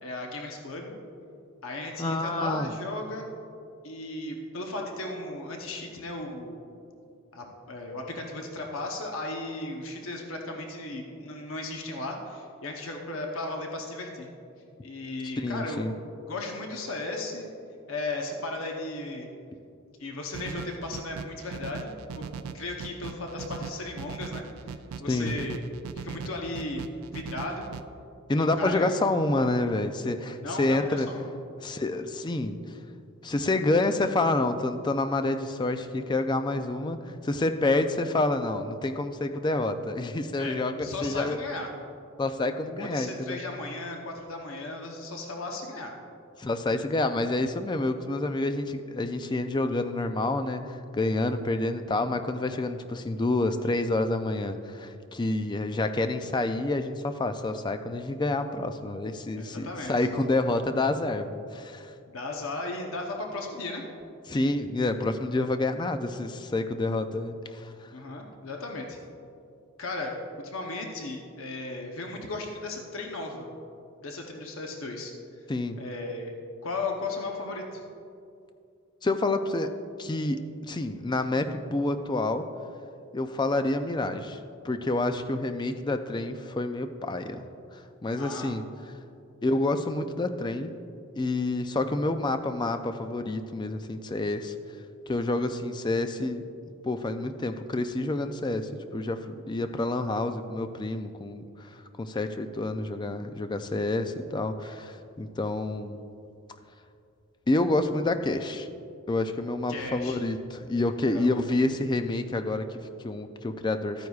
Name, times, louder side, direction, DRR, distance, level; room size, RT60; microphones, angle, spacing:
voice 1, 0.0-0.9 1.6-3.3 3.8-6.6 7.3-14.3 14.8-15.8 16.3-17.5 17.9-19.3 20.0-22.3 22.5-24.7 25.0-25.6 26.0-26.8 27.1-27.7 28.3-28.9 30.4-31.3 40.4-41.7 42.8-45.9 59.4-60.1 62.1-63.9 67.9-69.0 69.8-73.5 74.0-75.1 75.7-76.3 76.6-77.8 88.2-88.5 109.7-110.2 111.1-111.3, left 2 dB, 70° left, 1 dB, 0.9 m, -36 dB
voice 2, 2.0-2.7 15.4-15.9 25.1-25.4 28.3-31.1 31.6-32.6 33.2-41.4 42.2-43.4 46.4-61.9 64.3-67.7 75.5-75.8 79.0-79.7 80.0-82.4 83.1-87.4 87.7-88.6 89.4-90.7 91.2-94.5 95.1-96.4 96.8-106.0 107.5-108.7 109.1-114.1, left 2 dB, 20° left, 8 dB, 0.3 m, -28 dB
sound 1, 20.3-27.8, right 6 dB, 85° right, 0.4 m, -40 dB
13.0 x 9.3 x 2.4 m, 2.5 s
head